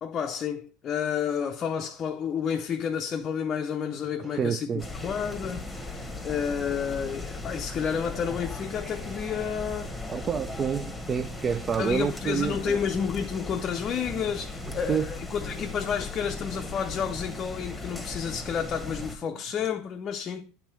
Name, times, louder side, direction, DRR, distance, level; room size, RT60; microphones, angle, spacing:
voice 1, 0.0-10.1 11.8-20.5, left 7 dB, 40° left, 0.5 m, -31 dB
sound 1, 3.8-19.7, right 7 dB, 70° right, 0.8 m, -53 dB
voice 2, 4.2-4.8 10.1-12.8 14.9-15.1, right 7 dB, 30° right, 0.3 m, -28 dB
sound 2, 4.8-19.2, left 2 dB, 5° left, 1.2 m, -38 dB
7.2 x 3.5 x 4.5 m
hypercardioid pair, 85°, 0 cm